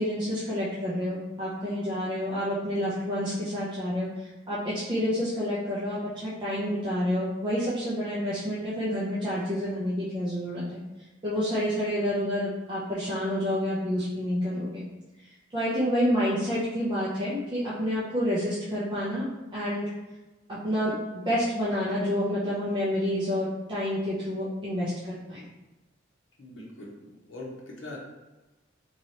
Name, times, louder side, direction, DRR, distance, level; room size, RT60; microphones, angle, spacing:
voice 1, 0.0-10.8 11.2-14.9 15.5-19.9 20.5-25.5, equal, 25° right, -9 dB, 0.6 m, -29 dB
voice 2, 26.4-28.0, left 2 dB, 70° left, -4 dB, 0.9 m, -42 dB
3.1 x 2.9 x 2.8 m, 1.1 s
head